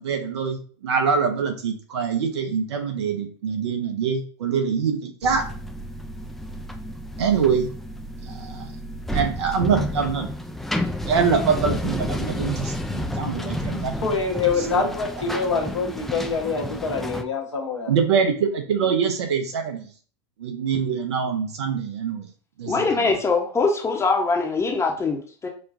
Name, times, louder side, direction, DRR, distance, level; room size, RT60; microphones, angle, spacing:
voice 1, 0.0-5.5 7.2-7.7 8.3-8.7 9.1-10.3 11.1-13.9 14.7-14.9 17.9-19.9 20.4-22.3 22.6-23.1, right 6 dB, 70° right, 5 dB, 0.8 m, -24 dB
sound 1, 5.2-17.2, equal, ahead, 0.3 m, -30 dB
voice 2, 14.0-17.9, left 4 dB, 80° left, 1 dB, 1.0 m, -25 dB
voice 3, 22.7-25.5, left 4 dB, 20° left, 2 dB, 0.7 m, -22 dB
5.2 x 2.3 x 2.5 m, 0.42 s
figure-of-eight pair, 90°, 15 cm